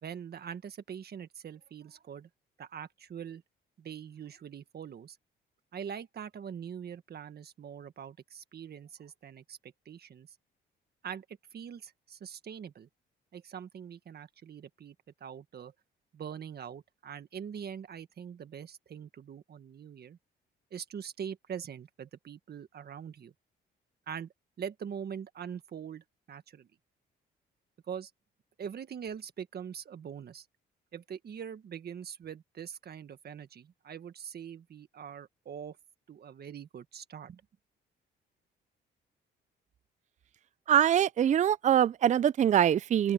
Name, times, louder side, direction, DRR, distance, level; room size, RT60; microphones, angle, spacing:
voice 1, 0.0-2.3 2.6-3.4 3.8-5.2 5.7-10.3 11.0-12.9 13.3-14.9 15.2-15.7 16.1-20.2 20.7-23.3 24.1-24.3 24.6-26.7 27.9-28.1 28.6-30.5 30.9-35.8 36.1-37.4, right 8 dB, 55° right, 1.7 m, -43 dB
voice 2, 40.7-43.1, right 10 dB, 40° right, 0.4 m, -24 dB
open air
cardioid pair, 90°, 20 cm